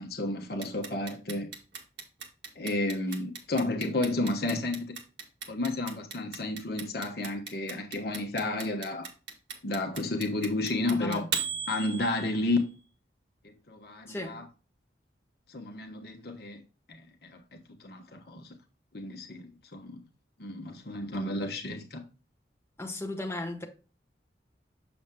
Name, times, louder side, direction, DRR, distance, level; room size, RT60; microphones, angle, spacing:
voice 1, 0.0-1.5 2.5-5.0 5.5-9.1 9.6-11.2 11.7-12.7 13.4-14.4 15.5-16.6 16.9-18.6 18.9-20.0 20.4-22.0, left 2 dB, 55° left, 1.1 m, -32 dB
Clock, 0.6-12.6, right 6 dB, 75° right, 1.6 m, -37 dB
voice 2, 10.9-11.3 14.1-14.4 22.8-23.6, left 2 dB, 15° left, 1.3 m, -35 dB
7.1 x 7.0 x 2.3 m
head